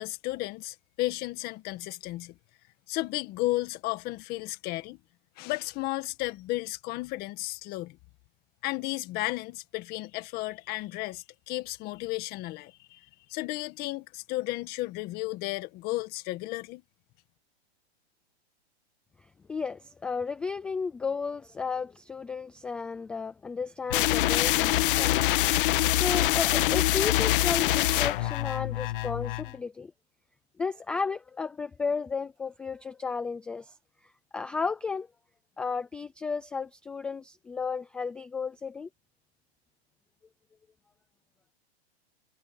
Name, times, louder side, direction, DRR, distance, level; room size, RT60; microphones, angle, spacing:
voice 1, 0.0-2.3 2.9-5.0 5.4-8.0 8.6-16.8, left 19 dB, 30° left, 1.8 m, -33 dB
voice 2, 19.5-25.1 25.9-29.9 30.6-33.7 34.3-35.1 35.6-38.9, left 5 dB, 5° left, 0.3 m, -33 dB
sound 1, 23.9-29.5, left 15 dB, 55° left, 1.5 m, -25 dB
hypercardioid pair, 150°, 32 cm